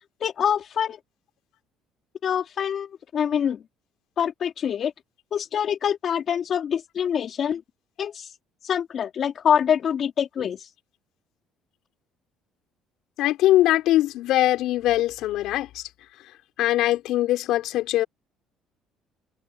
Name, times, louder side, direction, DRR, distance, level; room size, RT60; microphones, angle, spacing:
voice 1, 0.2-1.0 2.2-3.6 4.2-4.9 5.3-7.6 8.0-8.3 8.6-10.7, left 8 dB, 50° left, 2.6 m, -25 dB
voice 2, 13.2-15.8 16.6-18.1, left 15 dB, 75° left, 6.0 m, -22 dB
supercardioid pair, 80°, 0 cm